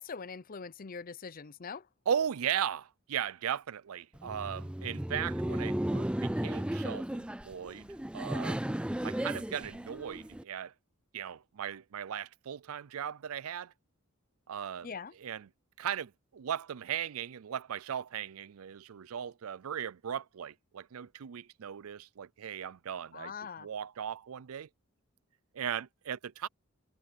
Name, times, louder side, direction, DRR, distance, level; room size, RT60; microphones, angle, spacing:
voice 1, 0.0-1.9 14.8-15.1 23.1-23.7, left 5 dB, 40° left, 0.6 m, -42 dB
voice 2, 2.1-7.9 8.1-8.7 9.0-10.7 11.1-13.7 14.5-14.9 15.2-15.5 15.8-24.7 25.5-26.5, right 8 dB, 80° right, 0.4 m, -37 dB
Laughter, 4.2-10.4, right 1 dB, 5° right, 0.4 m, -35 dB
head